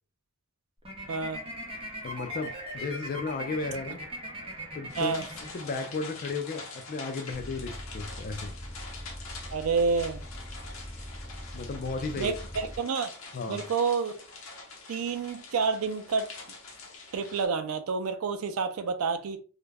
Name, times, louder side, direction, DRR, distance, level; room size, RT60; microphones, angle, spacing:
sound 1, 0.8-6.1, equal, 25° right, 0.8 m, -40 dB
voice 1, 1.1-1.5 5.0-5.3 9.5-10.2 12.2-13.1 13.5-14.1 14.9-16.3 17.1-19.4, right 5 dB, 80° right, 0.4 m, -29 dB
voice 2, 2.0-4.0 4.7-5.2 5.5-8.5 11.5-12.3 13.3-13.6, left 3 dB, 40° left, 0.4 m, -34 dB
sound 2, 4.9-17.5, left 3 dB, 65° left, 0.7 m, -45 dB
sound 3, 7.3-12.8, equal, 15° left, 0.8 m, -42 dB
2.3 x 2.0 x 3.2 m
head